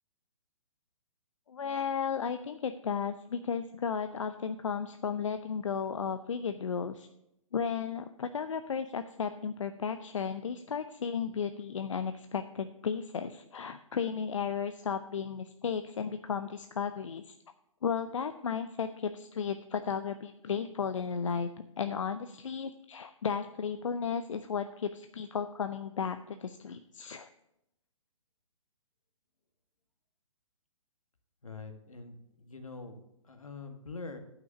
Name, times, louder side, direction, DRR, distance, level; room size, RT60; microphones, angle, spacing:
voice 1, 1.5-7.1 7.5-17.3 17.8-21.5 21.8-27.3, left 6 dB, 70° left, 9 dB, 0.6 m, -34 dB
voice 2, 31.4-33.0 33.2-34.2, left 4 dB, 85° left, 7 dB, 1.6 m, -44 dB
9.5 x 5.9 x 6.8 m, 0.83 s
figure-of-eight pair, 130°, 17 cm